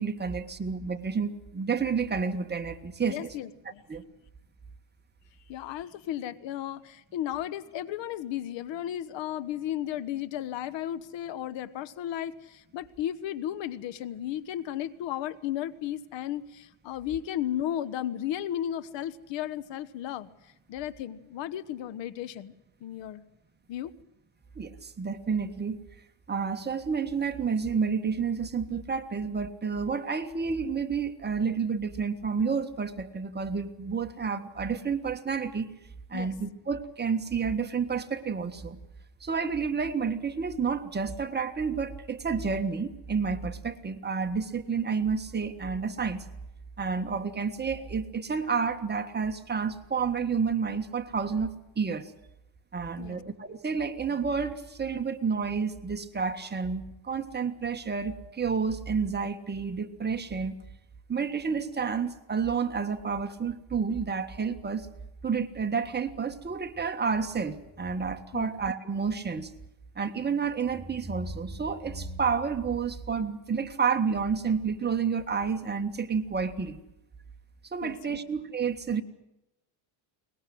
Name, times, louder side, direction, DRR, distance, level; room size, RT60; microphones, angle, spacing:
voice 1, 0.0-3.3 3.9-4.0 24.6-25.8 26.3-35.7 36.1-38.8 39.2-46.3 46.8-52.1 52.7-60.5 61.1-64.9 65.2-69.5 69.9-76.8 77.7-79.0, right 5 dB, 20° right, 7 dB, 1.6 m, -30 dB
voice 2, 3.0-3.8 5.5-20.3 20.7-22.5 22.8-23.2 23.7-23.9 36.1-36.3 53.0-53.2 68.3-68.5 77.8-78.2, left 11 dB, 65° left, 17 dB, 1.3 m, -34 dB
22.5 x 20.5 x 7.8 m, 0.89 s
cardioid pair, 115°, 48 cm